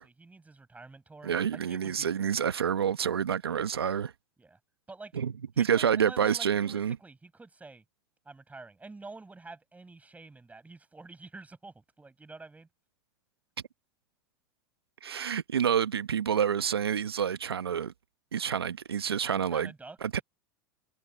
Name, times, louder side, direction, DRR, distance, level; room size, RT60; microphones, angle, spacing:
voice 1, 0.0-2.1 4.4-4.6 4.9-5.1 5.5-7.8 8.2-12.7 19.5-20.0, right 3 dB, 10° right, 6.6 m, -48 dB
voice 2, 1.2-4.1 5.1-7.0 15.0-17.9 18.3-19.7 20.0-20.2, right 8 dB, 90° right, 1.1 m, -28 dB
hypercardioid pair, 95°, 13 cm